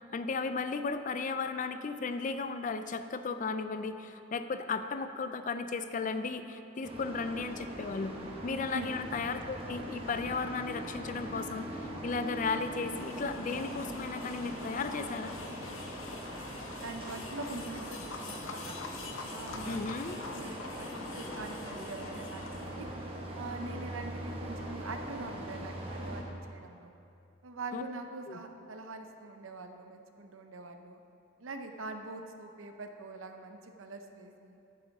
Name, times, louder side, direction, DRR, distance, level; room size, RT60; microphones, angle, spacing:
voice 1, 0.1-8.2 8.4-11.7 12.0-15.3 19.7-20.2 27.7-27.8 28.3-28.4, left 4 dB, 40° left, 10 dB, 0.4 m, -35 dB
sound 1, 6.8-26.2, right 1 dB, 30° right, 1.1 m, -41 dB
sound 2, 12.8-22.9, left 4 dB, 75° left, 0.8 m, -45 dB
voice 2, 16.8-18.0 18.3-18.8 19.3-19.8 20.3-22.9 23.3-26.9 27.4-31.0 31.4-34.6, right 3 dB, 80° right, 6 dB, 0.7 m, -43 dB
10.5 x 9.9 x 3.6 m, 2.7 s
head